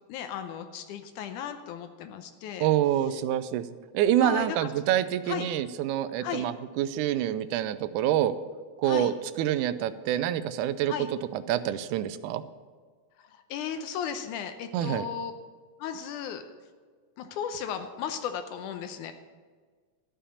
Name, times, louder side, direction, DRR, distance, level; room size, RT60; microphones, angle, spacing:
voice 1, 0.1-2.7 4.2-4.7 5.3-5.5 6.2-6.5 8.8-9.1 10.9-11.1 13.5-15.3 15.8-16.4 17.2-19.1, left 8 dB, 85° left, 8 dB, 2.2 m, -35 dB
voice 2, 2.6-3.7 3.9-8.3 8.8-10.9 11.3-12.4 14.7-15.1, right 11 dB, 85° right, 13 dB, 2.0 m, -27 dB
13.0 x 5.6 x 8.3 m, 1.5 s
omnidirectional pair, 3.5 m